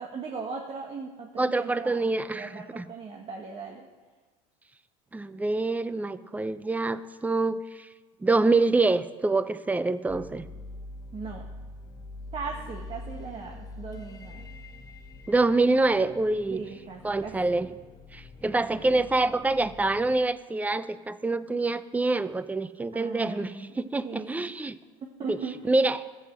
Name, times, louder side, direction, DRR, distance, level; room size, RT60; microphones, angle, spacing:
voice 1, 0.0-3.9 11.1-11.4 12.3-14.5 16.5-17.8 22.9-23.7 24.0-24.6 25.2-25.5, right 5 dB, 35° right, 1 dB, 1.5 m, -38 dB
voice 2, 1.4-2.9 5.1-7.9 8.2-10.5 15.3-16.6 17.0-17.7 18.1-24.7 25.3-25.4 25.7-26.0, right 3 dB, 10° right, 14 dB, 0.6 m, -26 dB
sound 1, 10.1-20.2, left 2 dB, 20° left, 1.3 m, -44 dB
13.0 x 7.7 x 7.8 m, 1.3 s
supercardioid pair, 100°, 18 cm